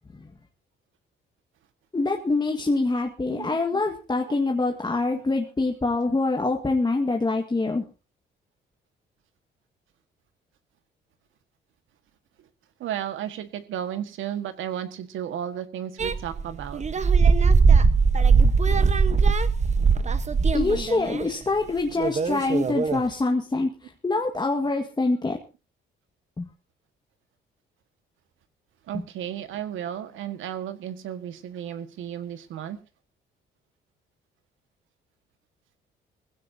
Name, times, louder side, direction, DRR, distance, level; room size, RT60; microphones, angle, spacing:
voice 1, 1.9-7.8 20.5-25.4 26.4-26.5, left 3 dB, 20° left, 2 dB, 1.7 m, -25 dB
voice 2, 3.3-3.8 5.1-5.2 12.8-16.8 28.9-32.8, right 10 dB, 80° right, 10 dB, 1.7 m, -34 dB
sound 1, 16.0-21.3 22.0-23.0, right 5 dB, 35° right, 1.2 m, -20 dB
20.5 x 16.0 x 2.8 m, 0.32 s
cardioid pair, 90°, 20 cm